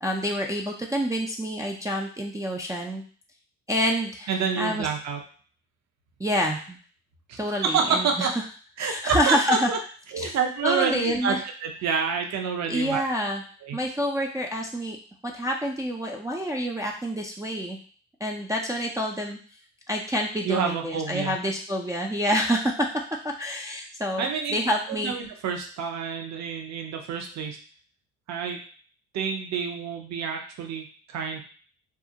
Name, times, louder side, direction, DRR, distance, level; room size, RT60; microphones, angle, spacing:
voice 1, 0.0-3.0 3.7-4.3 4.6-4.9 6.2-6.8 7.4-8.3 8.8-9.7 10.2-10.3 10.6-11.4 12.7-13.4 13.7-15.0 15.2-17.8 18.2-19.4 19.9-22.9 23.2-24.2 24.5-25.1, equal, 10° right, -2 dB, 0.3 m, -27 dB
voice 2, 4.3-5.2 7.3-8.3 8.8-9.8 10.1-13.0 13.6-13.8 20.4-21.4 24.2-24.6 24.9-27.6 28.3-28.6 29.1-31.4, right 6 dB, 50° right, 3 dB, 0.7 m, -28 dB
2.3 x 2.1 x 2.7 m, 0.42 s
hypercardioid pair, 60°, 35 cm